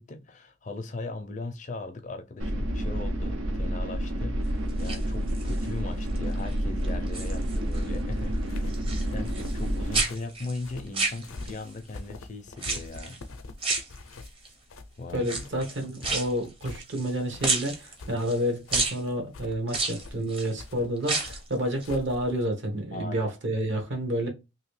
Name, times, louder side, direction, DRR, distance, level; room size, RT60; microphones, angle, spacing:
voice 1, 0.0-13.2 15.0-15.3 18.0-18.2 20.1-20.3 22.9-23.3, left 3 dB, 35° left, 0.4 m, -39 dB
sound 1, 2.4-10.0, equal, 80° right, 0.6 m, -29 dB
sound 2, 4.7-5.7 6.1-6.5 6.8-7.9 8.1-9.7 9.9-11.7 12.6-13.2 13.6-14.5 15.2-17.1 17.4-18.4 18.7-19.0 19.7-20.5 21.0-21.5 21.8-21.9, right 3 dB, 25° right, 0.7 m, -31 dB
sound 3, 8.4-22.5, left 2 dB, 90° left, 0.5 m, -44 dB
voice 2, 15.1-24.3, equal, 65° right, 1.1 m, -29 dB
2.9 x 2.7 x 3.1 m
head